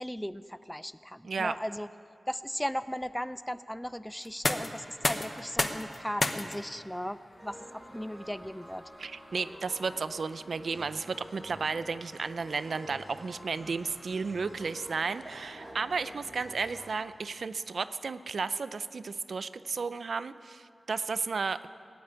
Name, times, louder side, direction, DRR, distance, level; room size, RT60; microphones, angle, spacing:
voice 1, 0.0-1.9 2.3-8.9, equal, 5° left, 15 dB, 0.3 m, -37 dB
sound 1, 4.2-16.0, left 2 dB, 35° left, 0.9 m, -38 dB
sound 2, 7.3-16.9, right 1 dB, 25° right, 3.4 m, -49 dB
voice 2, 9.0-21.7, right 4 dB, 75° right, 13 dB, 0.5 m, -33 dB
Laughter / Crowd, 14.4-18.2, right 1 dB, 50° right, 2.7 m, -51 dB
19.0 x 8.6 x 8.9 m, 2.4 s
wide cardioid pair, 110°, 0 cm